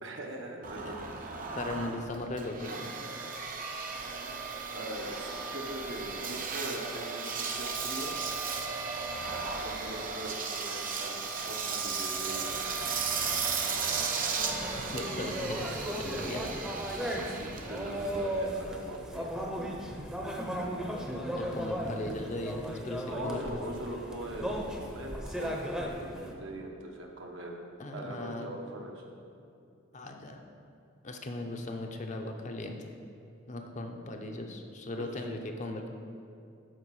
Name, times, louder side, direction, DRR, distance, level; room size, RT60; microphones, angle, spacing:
voice 1, 0.0-1.4 4.7-8.3 9.6-12.9 17.0-19.3 23.1-27.6 27.9-29.0 35.0-35.4, right 1 dB, 65° right, 1 dB, 1.1 m, -42 dB
Engine, 0.6-19.1, right 5 dB, 45° right, 0.7 m, -35 dB
voice 2, 0.9-1.2 1.5-2.9 14.7-16.4 21.4-23.8 27.8-28.6 29.9-30.4 31.0-32.8 33.5-35.9, left 2 dB, 35° left, 3 dB, 0.7 m, -38 dB
sound 1, 14.4-26.3, equal, 5° right, 0.8 m, -36 dB
12.5 x 4.6 x 4.8 m, 2.6 s
head